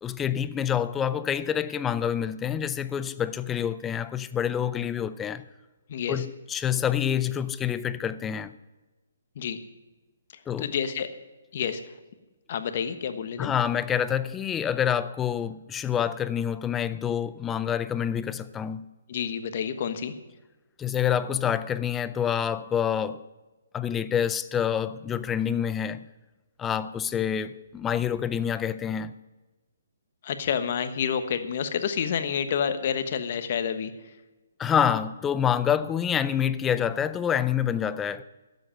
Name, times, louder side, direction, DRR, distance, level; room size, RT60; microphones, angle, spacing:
voice 1, 0.0-5.5 6.1-8.6 10.5-10.7 13.4-18.9 20.8-23.2 23.7-26.0 26.6-29.1 34.6-38.2, left 9 dB, 10° left, 0.5 m, -27 dB
voice 2, 5.9-6.2 9.4-9.6 10.6-11.1 11.5-11.8 12.5-13.5 19.1-20.1 30.2-33.9, left 7 dB, 45° left, 1.3 m, -29 dB
12.0 x 7.9 x 9.0 m
hypercardioid pair, 150°, 0 cm